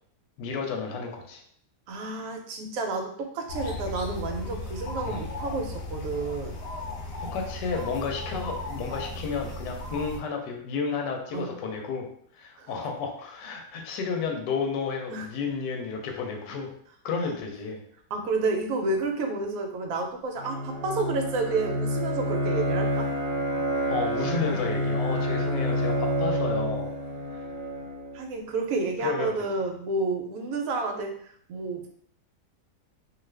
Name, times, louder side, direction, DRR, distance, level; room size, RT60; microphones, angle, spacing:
voice 1, 0.4-1.4 5.0-5.2 7.2-12.1 12.3-16.7 17.0-17.8 23.9-26.9 27.3-27.4 29.0-29.3, left 5 dB, 90° left, 3 dB, 1.2 m, -32 dB
voice 2, 1.9-6.6 11.3-11.5 12.6-12.7 15.1-15.3 18.1-23.1 28.1-31.9, right 3 dB, 70° right, 3 dB, 0.9 m, -30 dB
sound 1, 3.5-10.2, left 2 dB, 70° left, 0.5 m, -36 dB
Bowed string instrument, 20.4-28.2, equal, 45° left, 1.0 m, -28 dB
2.6 x 2.4 x 3.2 m, 0.62 s
omnidirectional pair, 1.8 m